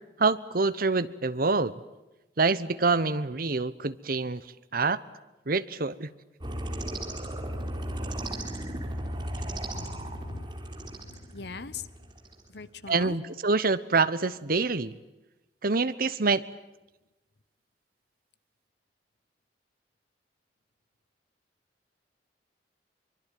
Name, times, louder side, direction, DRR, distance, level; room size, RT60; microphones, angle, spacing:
voice 1, 0.2-1.7 2.4-4.4 4.7-5.0 5.5-6.1 12.9-14.9 15.6-16.4, right 4 dB, 55° right, 14 dB, 1.1 m, -26 dB
sound 1, 6.4-12.4, right 1 dB, 25° right, 3.8 m, -36 dB
voice 2, 7.8-10.5 10.8-11.9 12.5-13.2, left 4 dB, 65° left, 15 dB, 1.2 m, -43 dB
24.5 x 23.5 x 9.3 m, 1.0 s
head